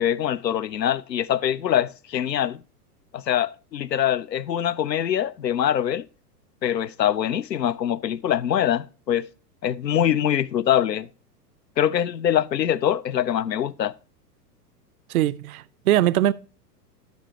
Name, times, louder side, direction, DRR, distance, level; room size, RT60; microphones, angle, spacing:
voice 1, 0.0-2.6 3.1-6.1 6.6-9.3 9.6-11.1 11.8-13.9, left 10 dB, 85° left, 0.6 m, -23 dB
voice 2, 15.1-16.3, right 13 dB, 60° right, 0.5 m, -21 dB
12.5 x 5.2 x 2.8 m
figure-of-eight pair, 95°, 49 cm